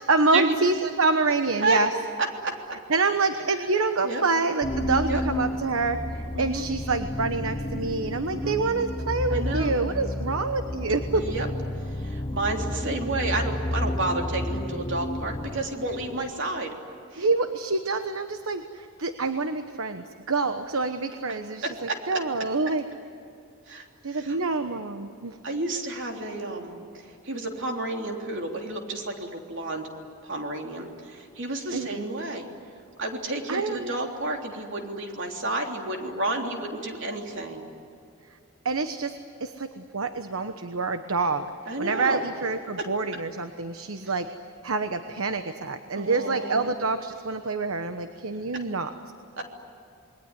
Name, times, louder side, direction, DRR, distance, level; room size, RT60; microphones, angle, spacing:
voice 1, 0.1-1.9 2.9-11.3 17.2-22.8 24.0-25.4 31.7-32.1 33.5-34.1 38.6-41.5 41.8-44.3 44.6-48.9, right 3 dB, 75° right, 8 dB, 1.2 m, -27 dB
voice 2, 2.4-2.8 4.0-4.2 5.1-5.2 6.3-6.6 8.3-8.6 9.3-9.7 11.1-11.5 11.9-16.7 17.1-17.3 21.9-22.0 23.7-24.4 25.4-29.9 30.2-32.4 33.0-37.6 41.7-42.2 44.0-44.1 45.9-46.7 49.4-49.5, right 2 dB, 60° right, 2 dB, 3.4 m, -31 dB
sound 1, 4.6-16.5, left 1 dB, 20° left, 0.7 m, -31 dB
28.0 x 21.5 x 9.9 m, 2.5 s
head